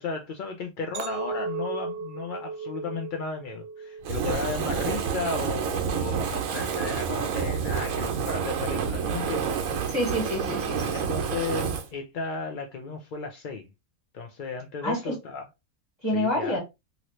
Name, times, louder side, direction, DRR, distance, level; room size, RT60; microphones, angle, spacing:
voice 1, 0.0-9.6 10.9-13.7 14.1-15.5 16.1-16.6, left 4 dB, 65° left, 0.5 m, -34 dB
Chink clink, 0.9-5.3 5.7-6.2, right 4 dB, 65° right, 0.4 m, -37 dB
Fire, 4.0-11.9, right 6 dB, 90° right, 1.1 m, -29 dB
voice 2, 9.9-11.0 14.8-15.1 16.0-16.6, left 1 dB, 20° left, 1.5 m, -28 dB
3.0 x 2.7 x 3.0 m
omnidirectional pair, 1.4 m